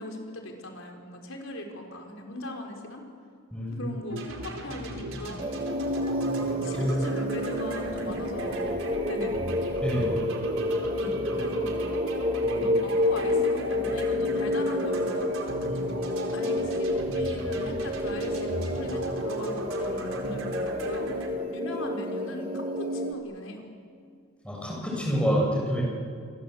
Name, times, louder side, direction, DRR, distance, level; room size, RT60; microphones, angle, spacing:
voice 1, 0.0-3.0 3.8-5.5 6.6-8.7 9.1-9.3 11.0-11.7 12.5-15.3 16.3-21.1 21.5-23.7, left 1 dB, 75° left, 2 dB, 4.7 m, -38 dB
voice 2, 3.5-3.9 6.5-7.0 9.8-10.2 24.4-25.8, equal, 5° left, -2 dB, 6.6 m, -27 dB
sound 1, 4.1-21.3, right 1 dB, 80° right, 4.3 m, -37 dB
sound 2, 5.4-23.1, left 1 dB, 25° right, 1.8 m, -29 dB
28.0 x 24.5 x 7.9 m, 2.2 s
head